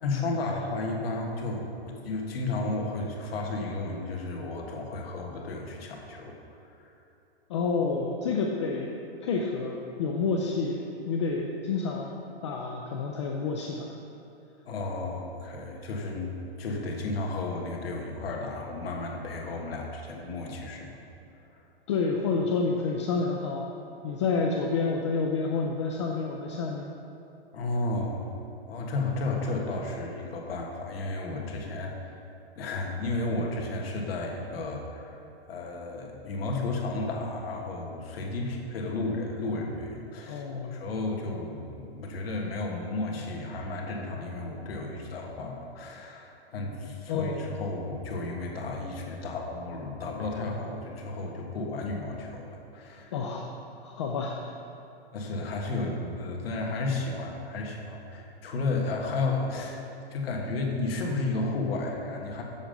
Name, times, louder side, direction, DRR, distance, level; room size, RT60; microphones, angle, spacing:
voice 1, 0.0-6.4 6.6-6.9 14.7-16.3 16.6-21.0 21.5-21.6 27.5-28.3 28.7-32.2 32.6-35.2 35.5-40.4 40.7-53.1 55.1-59.8 60.1-62.4, left 2 dB, 65° left, 0 dB, 1.7 m, -33 dB
voice 2, 7.5-8.9 9.2-13.9 21.9-23.7 24.0-26.9 40.3-40.8 47.1-47.5 53.1-53.5 53.8-54.5, left 4 dB, 30° left, 1 dB, 0.4 m, -29 dB
7.2 x 7.2 x 5.2 m, 2.8 s
hypercardioid pair, 160°, 31 cm